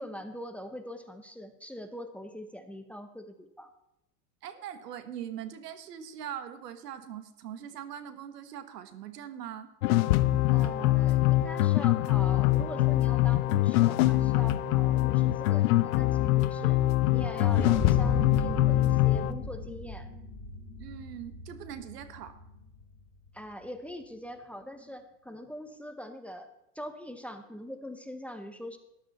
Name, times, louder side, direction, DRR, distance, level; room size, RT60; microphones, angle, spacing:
voice 1, 0.0-3.7 10.5-16.8 17.1-20.1 23.3-26.5 26.7-28.8, equal, 5° left, 8 dB, 0.8 m, -42 dB
voice 2, 4.4-9.7 20.8-22.4, right 9 dB, 85° right, 11 dB, 1.5 m, -41 dB
sound 1, 9.8-19.3, left 16 dB, 65° left, 0.8 m, -24 dB
sound 2, 17.4-22.9, left 2 dB, 20° left, 2.3 m, -36 dB
13.5 x 11.5 x 4.2 m, 0.86 s
supercardioid pair, 125°, 47 cm